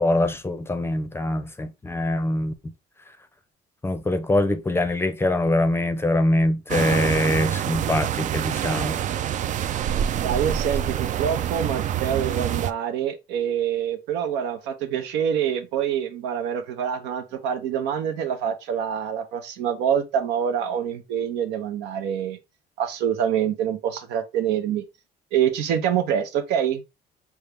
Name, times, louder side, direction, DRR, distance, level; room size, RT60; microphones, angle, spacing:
voice 1, 0.0-2.5 3.8-9.0, left 1 dB, 15° left, 0.6 m, -23 dB
sound 1, 6.7-12.7, right 10 dB, 50° right, 0.4 m, -26 dB
voice 2, 10.2-22.4 22.8-24.8 25.3-26.8, right 9 dB, 85° right, 0.8 m, -26 dB
5.4 x 2.4 x 3.4 m
cardioid pair, 110°, 17 cm